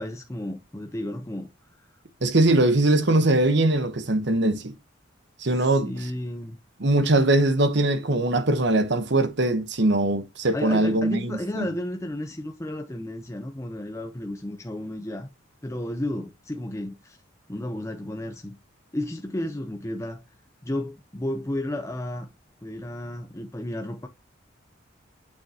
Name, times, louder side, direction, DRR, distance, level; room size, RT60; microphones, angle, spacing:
voice 1, 0.0-1.5 5.6-6.6 10.5-15.3 15.6-17.2 17.5-18.6 18.9-20.2 20.6-22.3 22.6-24.1, left 1 dB, 15° left, 0.7 m, -32 dB
voice 2, 2.2-4.7 5.4-6.1 6.8-11.7, right 2 dB, 60° right, 1.1 m, -21 dB
8.7 x 6.2 x 2.9 m
head